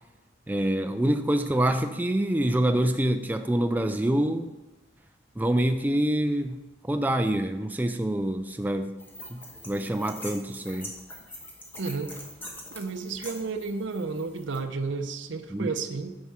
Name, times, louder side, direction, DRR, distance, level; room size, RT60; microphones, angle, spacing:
voice 1, 0.5-4.5 5.4-9.0 9.3-10.9 15.5-15.7, right 1 dB, 10° right, 7 dB, 0.3 m, -26 dB
sound 1, 9.0-14.6, left 1 dB, 10° left, 1.2 m, -43 dB
voice 2, 11.8-12.1 12.7-16.2, right 4 dB, 75° right, 8 dB, 0.7 m, -32 dB
9.6 x 4.6 x 5.6 m, 1.1 s
head